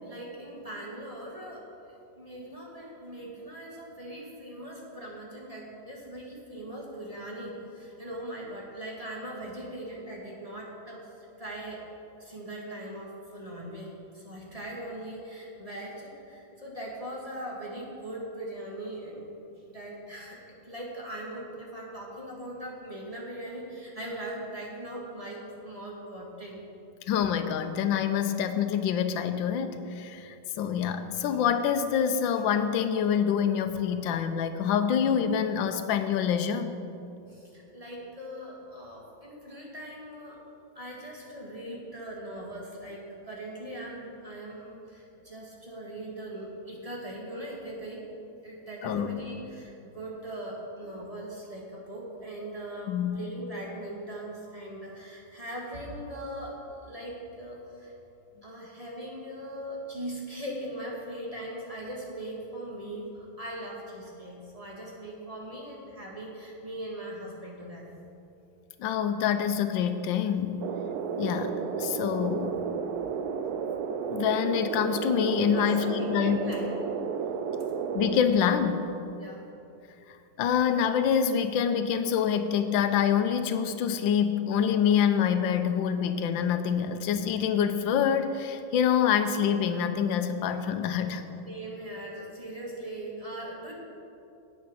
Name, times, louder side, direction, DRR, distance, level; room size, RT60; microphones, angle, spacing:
voice 1, 0.0-11.8 12.2-26.6 37.3-40.4 40.8-48.1 48.4-57.9 58.4-68.0 75.5-76.7 79.2-79.4 91.5-93.7, right 1 dB, 20° right, -4 dB, 1.7 m, -40 dB
voice 2, 27.1-36.7 48.8-49.2 52.9-53.2 68.8-70.6 71.2-72.6 74.1-76.4 77.9-78.9 80.4-91.2, left 8 dB, 90° left, 9 dB, 1.4 m, -26 dB
sound 1, 70.6-78.2, right 6 dB, 70° right, 1.0 m, -32 dB
9.1 x 8.4 x 6.3 m, 2.7 s
omnidirectional pair, 2.0 m